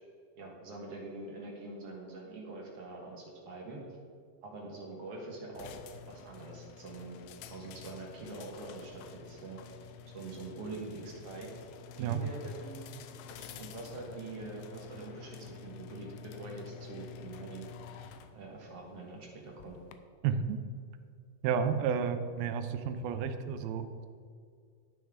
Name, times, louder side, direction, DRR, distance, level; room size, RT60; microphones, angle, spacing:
voice 1, 0.4-3.8 4.4-5.8 6.1-7.2 7.5-9.6 10.1-11.5 12.0-12.8 13.2-17.7 18.3-19.8, right 3 dB, 55° right, -1 dB, 1.9 m, -44 dB
sound 1, 5.5-20.0, left 7 dB, 85° left, 2.6 m, -49 dB
voice 2, 20.2-20.6 21.4-24.1, right 7 dB, 80° right, 9 dB, 2.4 m, -31 dB
11.5 x 9.7 x 3.6 m, 2.2 s
omnidirectional pair, 4.4 m